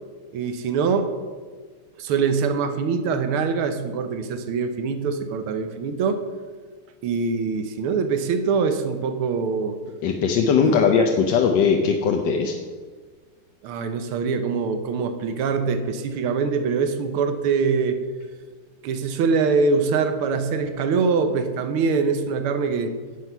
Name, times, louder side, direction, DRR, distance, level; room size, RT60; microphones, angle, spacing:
voice 1, 0.3-1.1 2.0-6.2 7.0-9.8 10.6-10.8 13.6-18.0 18.8-22.9, right 5 dB, 90° right, 8 dB, 1.8 m, -23 dB
voice 2, 10.0-12.6, left 6 dB, 65° left, 3 dB, 1.3 m, -19 dB
10.5 x 7.9 x 5.5 m, 1.5 s
omnidirectional pair, 2.3 m